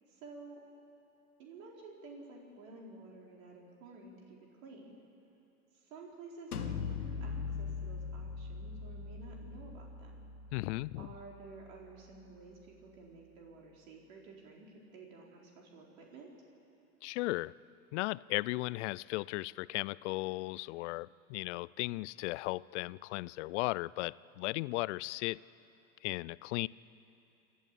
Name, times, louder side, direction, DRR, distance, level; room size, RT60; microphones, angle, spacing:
voice 1, 0.1-0.6 1.4-5.0 5.8-10.3 11.0-16.3, right 3 dB, 65° right, -1 dB, 4.4 m, -52 dB
sound 1, 6.5-12.2, left 5 dB, 90° left, 1.3 m, -41 dB
voice 2, 10.5-11.1 17.0-17.5 17.9-25.4 26.0-26.7, left 21 dB, 55° left, 22 dB, 0.5 m, -36 dB
28.5 x 12.0 x 8.5 m, 2.9 s
hypercardioid pair, 90°, 43 cm